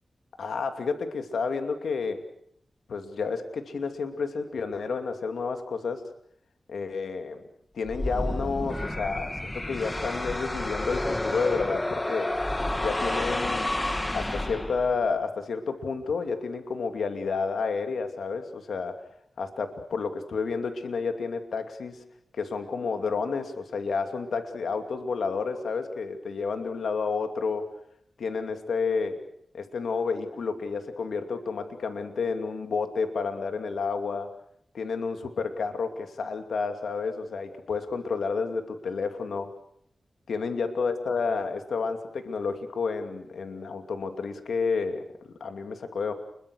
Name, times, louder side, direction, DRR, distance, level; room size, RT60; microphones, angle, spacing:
voice 1, 0.4-2.2 2.9-6.0 6.7-7.4 7.7-12.3 12.8-13.7 14.1-19.0 19.4-22.0 22.4-27.7 28.2-29.2 29.5-34.3 34.7-39.5 40.3-46.1, left 4 dB, 85° left, 7 dB, 2.5 m, -30 dB
sound 1, 7.8-15.1, left 1 dB, 20° left, 1.8 m, -30 dB
29.5 x 22.5 x 6.4 m, 0.68 s
cardioid pair, 50°, 0 cm